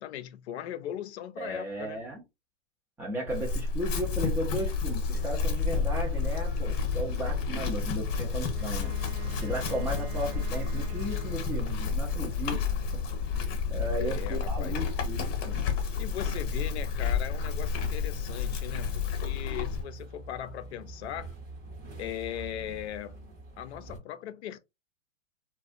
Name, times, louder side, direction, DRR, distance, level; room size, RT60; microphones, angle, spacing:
voice 1, 0.0-2.0 9.6-9.7 14.0-14.8 16.0-21.3 22.0-23.3 23.6-24.6, left 11 dB, 55° left, 0.5 m, -39 dB
voice 2, 1.4-2.2 3.0-8.9 9.3-12.6 13.3-15.6, right 1 dB, 5° right, 0.4 m, -35 dB
Chewing mastication / Livestock farm animals working animals, 3.3-19.8, left 5 dB, 35° left, 0.9 m, -30 dB
sound 1, 6.6-24.0, right 2 dB, 25° right, 0.8 m, -48 dB
Wind instrument woodwind instrument, 8.5-12.2, right 9 dB, 80° right, 0.7 m, -48 dB
2.3 x 2.2 x 2.5 m
hypercardioid pair, 115°, 39 cm